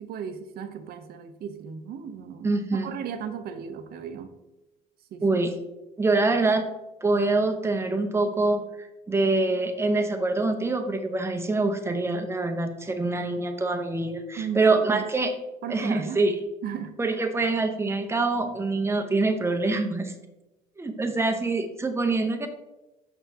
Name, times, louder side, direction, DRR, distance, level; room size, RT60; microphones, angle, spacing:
voice 1, 0.0-4.3 5.1-5.3 14.4-15.1 15.6-16.2 16.6-16.9, right 8 dB, 65° right, 9 dB, 0.7 m, -36 dB
voice 2, 2.4-2.9 5.2-5.5 6.0-6.6 7.0-15.3 15.7-16.4 17.0-20.1 20.8-22.5, right 3 dB, 15° right, 6 dB, 0.7 m, -25 dB
5.9 x 5.8 x 2.8 m, 1.0 s
cardioid pair, 110°, 17 cm